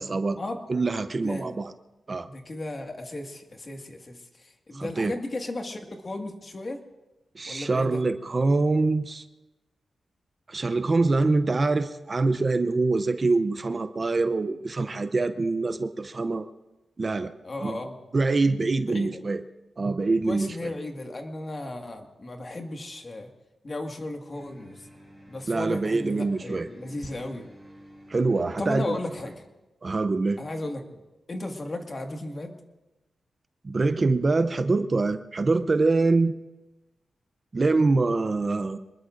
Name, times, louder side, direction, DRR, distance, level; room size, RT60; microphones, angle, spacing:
voice 1, 0.0-0.4 0.7-1.7 2.1-2.3 4.7-5.1 7.3-9.2 10.5-16.5 17.0-17.3 17.6-17.8 18.1-19.4 19.8-20.7 25.5-26.7 28.1-29.0 29.8-30.4 33.6-36.3 37.5-38.8, right 3 dB, 35° right, 10 dB, 0.6 m, -24 dB
voice 2, 1.2-1.5 2.3-6.8 7.5-8.0 17.4-18.0 18.8-19.2 20.3-23.3 23.6-24.8 25.3-27.5 28.6-29.4 30.4-31.0 31.3-32.5, left 2 dB, 35° left, 3 dB, 1.8 m, -35 dB
sound 1, 24.3-29.4, equal, 5° left, 7.2 m, -51 dB
26.5 x 20.5 x 2.6 m, 1.1 s
wide cardioid pair, 120°, 0 cm